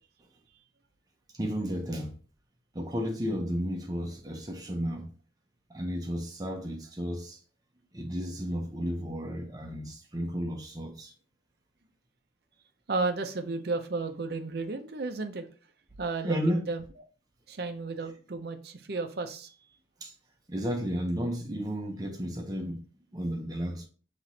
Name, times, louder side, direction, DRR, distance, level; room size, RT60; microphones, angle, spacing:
voice 1, 1.3-2.1 2.7-5.1 5.7-7.4 7.9-11.1 16.2-16.7 20.0-20.1 20.5-22.8 23.1-23.9, equal, 20° right, 0.7 m, -33 dB
voice 2, 12.9-15.5 16.0-16.8 17.5-19.5, right 3 dB, 55° right, 0.6 m, -33 dB
5.8 x 3.0 x 2.7 m
head